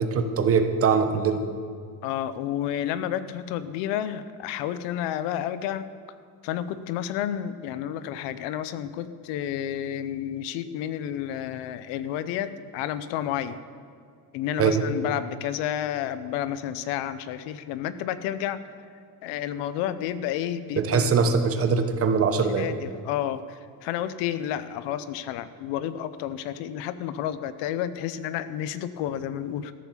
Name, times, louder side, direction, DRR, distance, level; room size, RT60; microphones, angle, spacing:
voice 1, 0.0-1.4 14.6-14.8 20.8-22.7, right 5 dB, 35° right, 7 dB, 1.0 m, -22 dB
voice 2, 2.0-5.9 6.4-13.6 14.3-18.6 19.2-21.1 22.6-29.7, left 10 dB, 85° left, 14 dB, 0.8 m, -31 dB
13.5 x 7.2 x 7.3 m, 2.2 s
cardioid pair, 150°, 41 cm